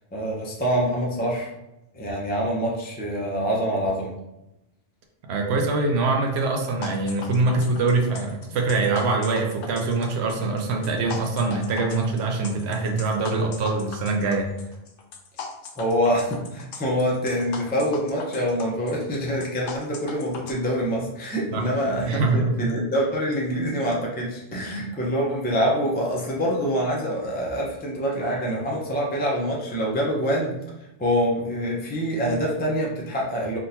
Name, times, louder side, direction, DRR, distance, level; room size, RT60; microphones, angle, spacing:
voice 1, 0.1-1.5 1.9-4.1 15.7-30.5 31.0-33.6, equal, 15° left, -3 dB, 0.4 m, -25 dB
voice 2, 5.2-14.5 21.5-21.6 22.0-22.5, right 3 dB, 80° right, 2 dB, 0.8 m, -24 dB
sound 1, 6.8-20.5, left 5 dB, 65° left, 0.7 m, -39 dB
3.6 x 2.5 x 2.8 m, 0.93 s
omnidirectional pair, 1.1 m